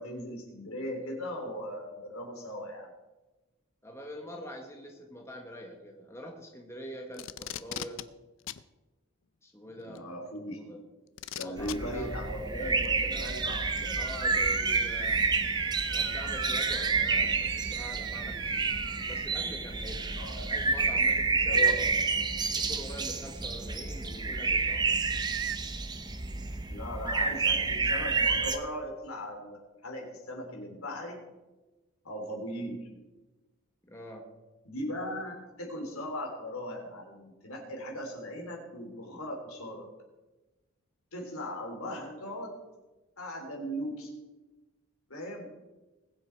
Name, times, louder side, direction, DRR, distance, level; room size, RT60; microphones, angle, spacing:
voice 1, 0.0-2.9 9.9-10.8 11.3-14.0 16.8-17.2 20.1-20.5 21.5-22.0 26.7-31.2 32.0-32.9 34.7-39.9 41.1-42.5 43.2-44.1 45.1-45.5, equal, 80° left, 1 dB, 3.6 m, -38 dB
voice 2, 3.8-8.0 9.4-10.3 10.6-10.8 11.4-13.3 13.9-15.2 15.9-18.7 19.0-21.8 22.5-25.0 33.9-34.3, equal, 10° left, 1 dB, 1.4 m, -45 dB
Packing tape duct tape, 7.1-8.0 8.5-8.6 9.9-10.0 11.2-11.7 12.8-12.9, left 11 dB, 65° left, 0.5 m, -38 dB
sound 1, 11.6-28.6, right 4 dB, 20° right, 0.7 m, -29 dB
sound 2, 13.2-19.3 24.8-25.6, right 11 dB, 50° right, 0.4 m, -39 dB
20.5 x 7.7 x 4.6 m, 1.1 s
head